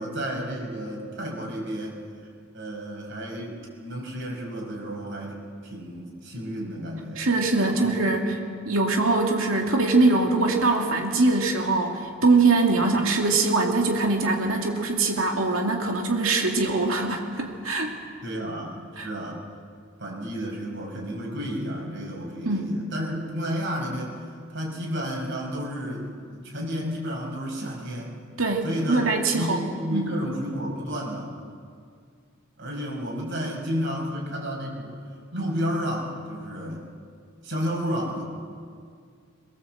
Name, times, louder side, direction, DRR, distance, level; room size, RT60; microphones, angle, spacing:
voice 1, 0.0-2.0 2.5-8.1 18.2-19.4 20.0-24.2 24.5-26.1 26.3-28.1 28.6-29.0 29.3-31.3 32.6-34.9 35.3-36.8 37.4-38.2, equal, 60° right, -1 dB, 6.2 m, -32 dB
voice 2, 7.2-8.4 8.7-17.9 19.0-19.1 22.4-22.8 28.4-29.6 29.9-30.1, right 3 dB, 80° right, 1 dB, 2.5 m, -22 dB
22.5 x 22.0 x 7.8 m, 2.2 s
head